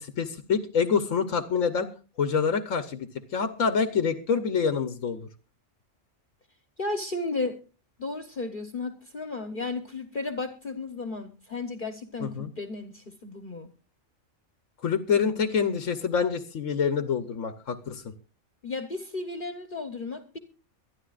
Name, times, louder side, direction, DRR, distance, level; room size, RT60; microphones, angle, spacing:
voice 1, 0.2-1.9 2.2-5.2 12.2-12.5 14.8-18.1, left 6 dB, 85° left, 10 dB, 1.3 m, -26 dB
voice 2, 6.8-7.6 8.0-13.7 18.6-20.4, left 3 dB, 45° left, 8 dB, 1.1 m, -34 dB
23.0 x 12.5 x 2.4 m, 0.34 s
omnidirectional pair, 1.3 m